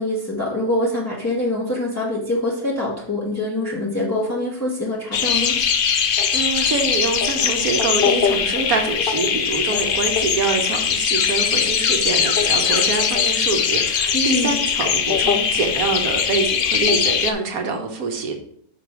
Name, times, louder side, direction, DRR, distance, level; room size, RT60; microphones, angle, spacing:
voice 1, 0.0-5.6 14.1-14.6, left 1 dB, 10° left, -5 dB, 1.4 m, -24 dB
sound 1, 5.1-17.3, left 7 dB, 55° left, 0.6 m, -20 dB
voice 2, 6.3-18.3, right 4 dB, 75° right, 4 dB, 1.5 m, -25 dB
5.7 x 5.2 x 6.0 m, 0.67 s
omnidirectional pair, 1.5 m